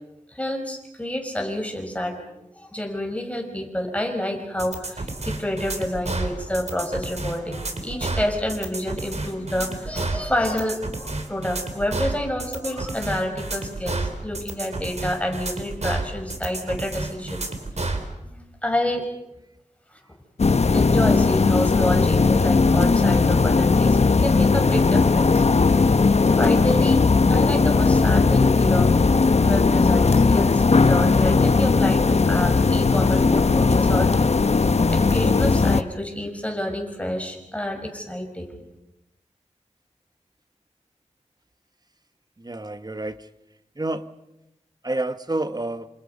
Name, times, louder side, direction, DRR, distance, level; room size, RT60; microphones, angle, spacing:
voice 1, 0.3-17.5 18.2-18.3 18.6-19.1 20.7-25.7 26.4-29.0 29.4-34.3 34.9-38.5, left 1 dB, 10° left, 3 dB, 5.8 m, -28 dB
sound 1, 4.6-18.1, right 2 dB, 65° right, 3.6 m, -30 dB
sound 2, 20.4-35.8, left 4 dB, 60° left, 0.9 m, -18 dB
voice 2, 42.4-43.3 43.8-44.1 44.8-45.9, right 2 dB, 35° right, 11 dB, 1.2 m, -29 dB
28.0 x 27.5 x 5.4 m, 0.89 s
wide cardioid pair, 75°, 12 cm